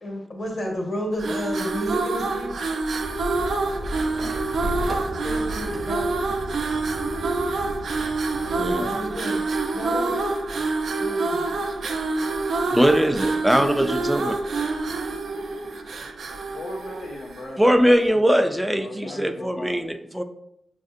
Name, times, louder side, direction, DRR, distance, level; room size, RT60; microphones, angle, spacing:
voice 1, 0.0-2.6 5.0-6.1 8.3-9.4 9.7-10.1 11.0-11.4, equal, 55° left, -1 dB, 1.3 m, -32 dB
sound 1, 1.1-17.6, right 3 dB, 75° right, 0.4 m, -27 dB
sound 2, 3.0-8.8, equal, 35° right, 0.7 m, -35 dB
voice 2, 8.6-8.9 12.7-14.4 17.6-20.2, equal, 5° right, 6 dB, 0.4 m, -21 dB
voice 3, 16.5-18.0 18.3-18.4 18.7-19.8, left 2 dB, 85° left, -2 dB, 0.5 m, -37 dB
6.2 x 2.6 x 2.5 m, 0.78 s
cardioid pair, 60°, 0 cm